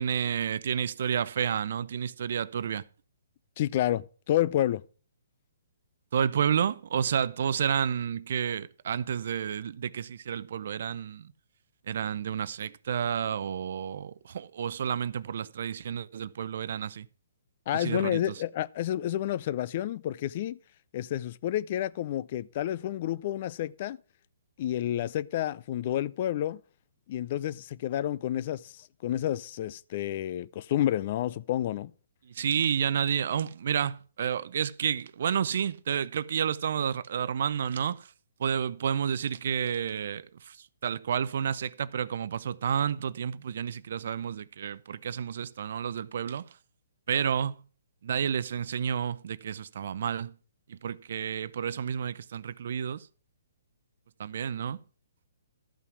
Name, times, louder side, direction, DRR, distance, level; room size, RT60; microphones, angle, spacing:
voice 1, 0.0-2.8 6.1-11.3 11.9-17.1 17.8-18.2 32.3-38.1 38.4-46.5 47.1-47.6 48.0-50.3 50.7-53.1 54.2-54.8, right 8 dB, 60° right, 0.5 m, -30 dB
voice 2, 3.6-4.8 17.7-20.6 20.9-24.0 24.6-26.6 27.1-31.9, left 12 dB, 45° left, 0.4 m, -30 dB
12.5 x 5.7 x 6.1 m
hypercardioid pair, 140°, 0 cm